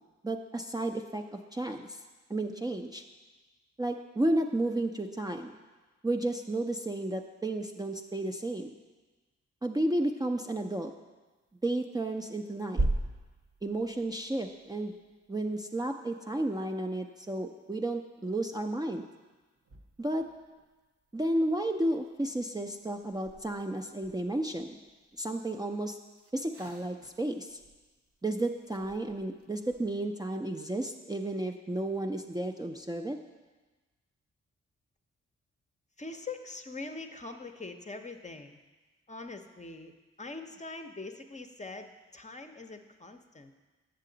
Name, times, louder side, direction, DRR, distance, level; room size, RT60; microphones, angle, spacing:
voice 1, 0.2-2.0 2.3-3.0 3.8-5.5 6.0-8.7 9.6-10.9 11.6-12.9 13.6-14.9 15.3-19.0 20.0-20.3 21.1-24.8 25.2-26.0 26.3-27.6 28.2-33.2, right 1 dB, 15° right, 3 dB, 0.5 m, -32 dB
sound 1, 11.5-12.1 12.5-15.9 19.3-21.3 21.6-29.9, right 2 dB, 50° right, 0.9 m, -40 dB
voice 2, 36.0-38.6 39.1-39.9 40.2-43.5, left 3 dB, 25° left, 6 dB, 0.7 m, -43 dB
7.4 x 6.6 x 3.9 m, 1.3 s
supercardioid pair, 45°, 30 cm